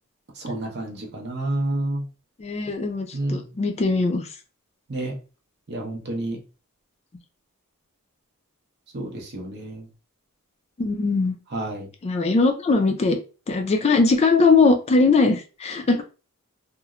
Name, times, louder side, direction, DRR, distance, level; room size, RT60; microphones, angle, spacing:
voice 1, 0.4-2.0 3.1-3.4 4.9-5.2 5.7-6.4 8.9-9.8 11.5-11.9, right 1 dB, 50° right, 1 dB, 0.7 m, -29 dB
voice 2, 2.4-4.3 10.8-11.4 12.0-13.2 13.5-16.0, left 3 dB, 30° left, 5 dB, 0.3 m, -20 dB
2.9 x 2.0 x 2.3 m, 0.33 s
head